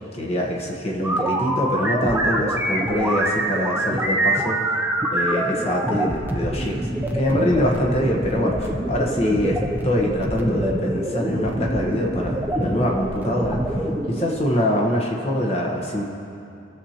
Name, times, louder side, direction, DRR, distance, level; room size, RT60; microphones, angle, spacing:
voice 1, 0.1-4.6 5.1-6.9 7.1-9.6 9.8-16.0, left 1 dB, 35° left, -1 dB, 1.0 m, -24 dB
Robot kind of high pitch sounds, 1.0-14.4, right 1 dB, 10° right, 0.6 m, -25 dB
16.5 x 7.2 x 2.9 m, 2.7 s
head